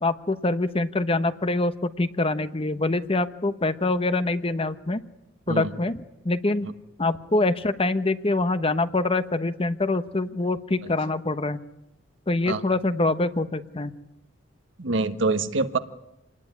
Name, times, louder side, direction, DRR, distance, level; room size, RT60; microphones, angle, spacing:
voice 1, 0.0-5.0 5.5-6.7 7.0-11.6 12.3-13.9, left 2 dB, 30° left, 12 dB, 1.0 m, -25 dB
voice 2, 14.8-15.8, right 3 dB, 70° right, 9 dB, 1.5 m, -25 dB
27.5 x 19.5 x 9.8 m, 0.92 s
head